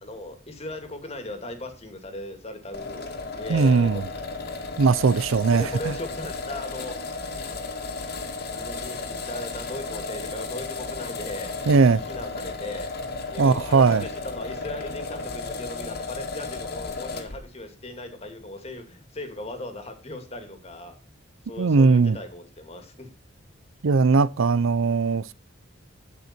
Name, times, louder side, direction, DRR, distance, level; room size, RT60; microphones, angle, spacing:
voice 1, 0.0-3.1 3.3-4.0 5.5-6.9 8.5-11.5 11.8-12.9 13.3-20.9 21.5-23.1, left 1 dB, 30° left, 2.3 m, -38 dB
sound 1, 2.7-17.4, left 3 dB, 50° left, 2.2 m, -34 dB
voice 2, 3.5-4.0 4.8-5.7 11.7-12.0 13.4-14.0 21.6-22.2 23.8-25.3, right 4 dB, 80° right, 0.5 m, -19 dB
16.5 x 5.7 x 4.4 m
head